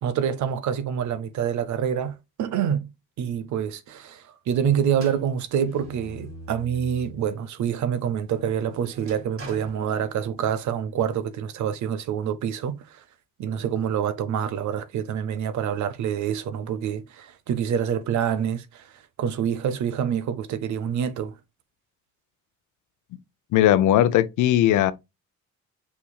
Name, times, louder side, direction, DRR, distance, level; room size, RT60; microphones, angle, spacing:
voice 1, 0.0-2.9 3.2-13.0 13.4-18.9 19.2-21.3, right 8 dB, 70° right, 0.7 m, -27 dB
sound 1, 4.9-7.3 7.8-10.6, right 1 dB, 50° right, 2.7 m, -44 dB
voice 2, 23.5-24.9, left 12 dB, 80° left, 0.6 m, -18 dB
5.7 x 4.2 x 2.3 m
cardioid pair, 90°, 30 cm